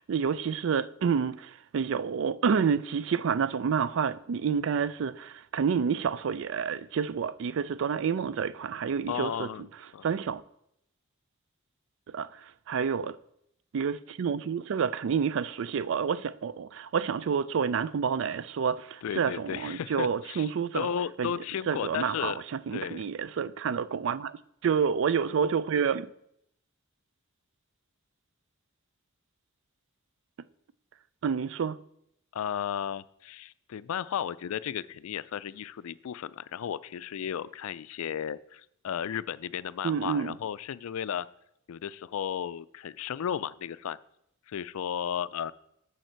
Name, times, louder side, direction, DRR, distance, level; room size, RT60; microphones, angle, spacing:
voice 1, 0.0-9.5 10.0-10.4 12.1-13.2 13.7-20.9 21.2-21.3 21.7-26.1 31.2-31.8 39.8-40.4, right 6 dB, 60° right, 0.4 m, -29 dB
voice 2, 9.1-9.7 9.9-10.1 19.0-22.4 22.7-23.0 32.4-41.3 41.7-44.0 44.5-45.5, left 8 dB, 80° left, 0.3 m, -34 dB
9.1 x 6.4 x 4.5 m
head